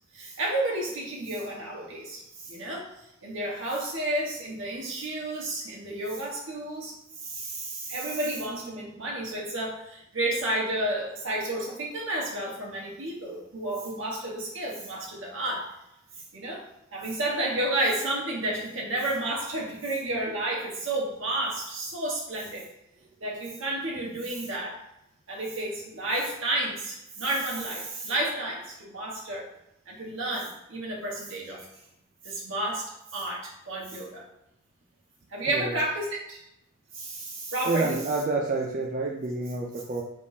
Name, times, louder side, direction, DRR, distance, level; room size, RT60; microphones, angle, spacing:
voice 1, 0.1-15.7 16.3-16.6 16.9-22.6 23.2-24.8 25.3-29.5 29.9-31.7 32.2-34.2 35.3-36.4 36.9-38.0, right 1 dB, 75° right, -3 dB, 1.3 m, -31 dB
voice 2, 35.5-35.8 37.7-40.0, right 3 dB, 40° right, -1 dB, 0.4 m, -28 dB
4.9 x 3.5 x 2.7 m, 0.85 s
head